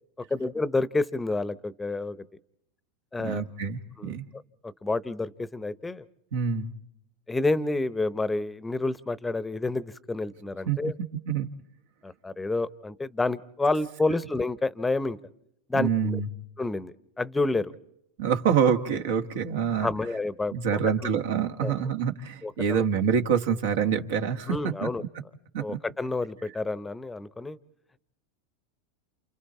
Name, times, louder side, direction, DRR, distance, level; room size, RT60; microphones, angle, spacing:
voice 1, 0.3-2.2 3.1-3.4 4.0-4.1 4.6-6.0 7.3-10.9 12.0-15.2 15.7-16.2 16.6-17.7 19.8-20.9 21.6-21.7 22.4-22.9 24.5-25.0 25.6-27.6, left 3 dB, 10° left, 18 dB, 0.8 m, -29 dB
voice 2, 3.2-4.2 6.3-6.7 10.7-10.8 11.3-11.5 15.7-16.3 18.2-19.9 20.5-24.6 24.8-24.9 25.5-25.8, right 7 dB, 75° right, 6 dB, 1.6 m, -26 dB
29.0 x 28.5 x 4.3 m, 0.75 s
hypercardioid pair, 100°, 0 cm